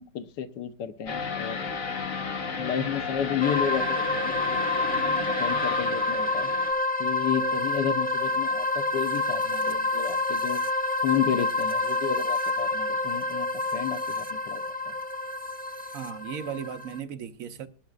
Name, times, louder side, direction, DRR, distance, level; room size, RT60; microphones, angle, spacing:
voice 1, 0.0-1.7 2.6-4.4 5.4-6.5 7.0-10.6 11.0-13.5 13.7-14.9, left 9 dB, 75° left, 1.5 m, -31 dB
sound 1, 1.1-6.7, left 4 dB, 50° left, 1.8 m, -33 dB
sound 2, 3.4-17.0, left 2 dB, 10° left, 0.4 m, -28 dB
voice 2, 15.9-17.7, right 8 dB, 60° right, 1.1 m, -36 dB
20.5 x 13.0 x 2.4 m
omnidirectional pair, 1.9 m